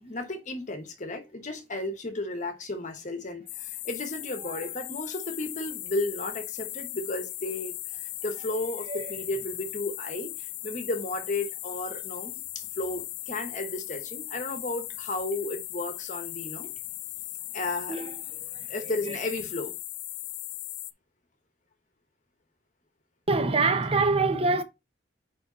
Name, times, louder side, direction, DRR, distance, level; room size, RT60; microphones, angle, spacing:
voice 1, 0.0-16.7 17.5-18.0 18.7-19.8, left 2 dB, 45° left, 1.0 m, -34 dB
sound 1, 3.5-20.9, left 17 dB, 60° left, 0.4 m, -38 dB
voice 2, 17.9-19.2 23.3-24.6, right 3 dB, 35° right, 0.7 m, -26 dB
5.0 x 4.7 x 4.1 m
head